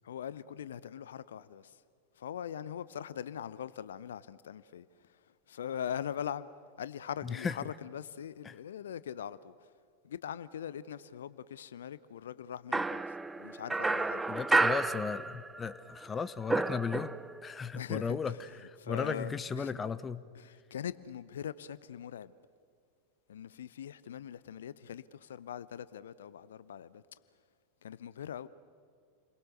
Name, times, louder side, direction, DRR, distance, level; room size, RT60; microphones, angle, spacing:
voice 1, 0.0-1.8 2.2-4.9 5.5-6.5 6.8-9.5 10.0-13.0 13.4-14.3 17.7-18.4 18.8-19.7 20.3-22.3 23.3-27.0 27.8-28.5, left 9 dB, 65° left, 0.7 m, -41 dB
voice 2, 7.2-7.6 8.4-8.5 14.3-17.1 17.4-18.3 18.6-20.2, left 5 dB, 20° left, 0.8 m, -35 dB
sound 1, 12.7-15.7 16.0-17.5, right 3 dB, 10° right, 0.7 m, -31 dB
30.0 x 22.5 x 6.7 m
figure-of-eight pair, 90°, 0 cm